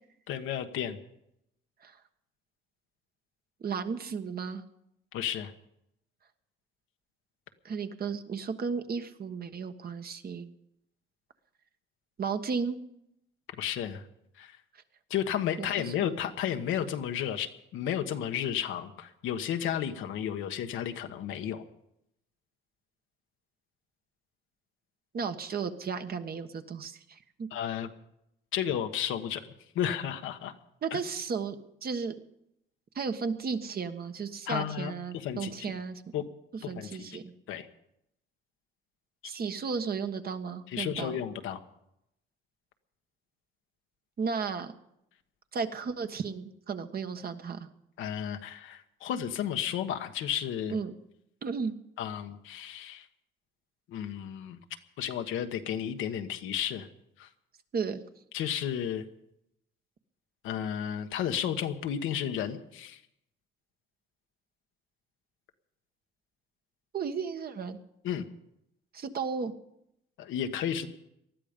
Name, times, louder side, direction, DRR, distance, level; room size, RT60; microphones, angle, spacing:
voice 1, 0.3-1.0 5.1-5.5 13.6-14.0 14.4-14.6 15.1-21.6 27.5-27.9 28.5-30.5 30.9-31.0 34.5-35.8 36.1-36.2 36.6-37.0 37.5-37.7 40.7-41.6 48.0-50.8 52.0-53.1 53.9-54.6 55.0-56.9 57.2-57.3 58.3-59.0 60.4-63.0 68.0-68.2 70.2-70.9, left 9 dB, 90° left, 7 dB, 1.3 m, -33 dB
voice 2, 3.6-4.6 7.6-10.5 12.2-12.8 15.6-15.7 16.0-16.1 25.1-27.5 30.8-32.1 32.9-36.0 36.7-37.2 39.2-41.2 44.2-44.7 45.5-47.7 50.7-50.9 51.4-51.7 57.7-58.0 66.9-67.8 68.9-69.5, right 5 dB, 50° right, 8 dB, 1.4 m, -34 dB
19.5 x 13.0 x 5.2 m, 0.79 s
cardioid pair, 90°, 20 cm